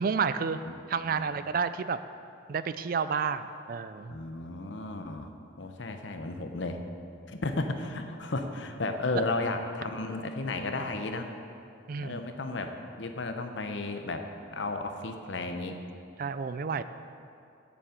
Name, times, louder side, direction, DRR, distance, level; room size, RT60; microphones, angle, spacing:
voice 1, 0.0-0.6 0.9-2.0 2.5-4.2 11.9-12.2 16.2-16.8, right 6 dB, 45° right, 12 dB, 0.3 m, -30 dB
voice 2, 4.1-5.3 5.6-6.8 7.3-11.3 12.0-14.3 14.5-15.8, left 2 dB, 65° left, 6 dB, 0.8 m, -33 dB
8.6 x 7.1 x 7.7 m, 2.5 s
head